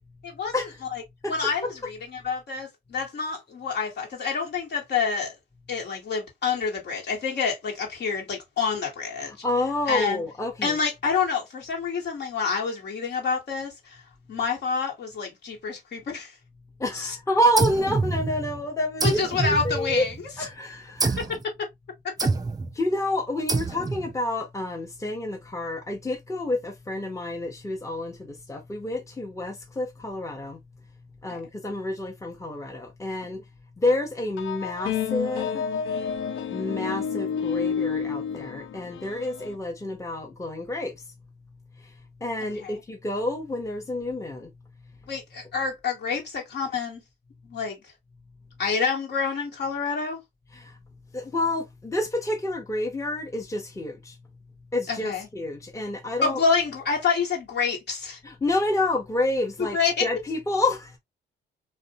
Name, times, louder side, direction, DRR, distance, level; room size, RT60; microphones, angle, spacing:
voice 1, 0.2-1.0 1.3-5.3 5.7-9.3 9.9-10.2 10.6-14.0 14.3-16.3 16.9-17.2 19.0-20.1 21.6-21.7 31.3-31.4 42.4-42.7 45.1-47.0 47.4-47.8 48.6-50.2 54.9-55.3 56.2-58.2 59.7-60.0, left 5 dB, 60° left, 1.2 m, -28 dB
voice 2, 9.2-10.8 16.8-20.0 20.4-21.2 22.7-30.6 31.2-33.4 33.8-35.7 36.5-41.0 41.8-41.9 42.2-44.5 50.5-50.8 51.1-54.2 54.7-56.4 58.2-61.0, left 1 dB, 15° left, 0.8 m, -28 dB
sound 1, 17.6-18.6 19.0-20.3 21.0-21.4 22.2-22.7 23.5-24.1, right 3 dB, 20° right, 0.4 m, -27 dB
sound 2, 34.4-39.5, left 7 dB, 80° left, 0.5 m, -30 dB
2.4 x 2.1 x 2.7 m
supercardioid pair, 65°, 20 cm